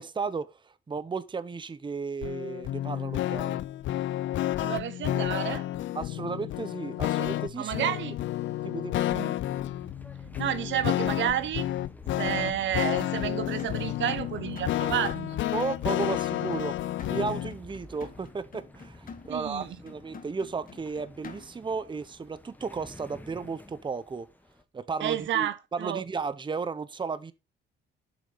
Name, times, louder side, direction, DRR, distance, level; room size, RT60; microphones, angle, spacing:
voice 1, 0.0-3.6 5.9-7.9 8.6-9.1 15.5-24.3 24.7-27.3, right 4 dB, 25° right, 0.8 m, -34 dB
sound 1, 2.2-17.5, left 14 dB, 70° left, 0.5 m, -31 dB
voice 2, 4.6-5.7 7.6-8.1 9.1-9.4 10.4-11.7 12.2-15.4 19.3-19.7 25.0-26.0, right 11 dB, 70° right, 0.9 m, -30 dB
sound 2, 9.5-24.6, left 2 dB, 10° left, 1.1 m, -49 dB
sound 3, 13.1-21.7, left 5 dB, 45° left, 1.7 m, -48 dB
8.3 x 6.4 x 4.0 m
cardioid pair, 90°, 20 cm